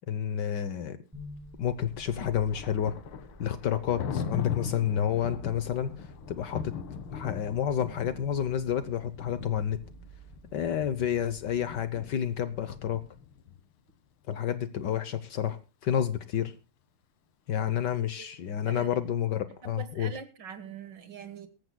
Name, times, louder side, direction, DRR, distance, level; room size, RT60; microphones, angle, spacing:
voice 1, 0.1-1.0 1.6-3.0 3.4-6.7 7.1-9.8 10.5-13.0 14.3-16.5 17.5-20.2, left 9 dB, 65° left, 1.3 m, -30 dB
sound 1, 1.1-13.2, right 2 dB, 5° right, 5.1 m, -52 dB
Thunder, 1.8-13.6, left 7 dB, 80° left, 2.1 m, -40 dB
voice 2, 19.6-21.5, right 7 dB, 60° right, 2.0 m, -43 dB
23.0 x 14.0 x 2.2 m
omnidirectional pair, 2.4 m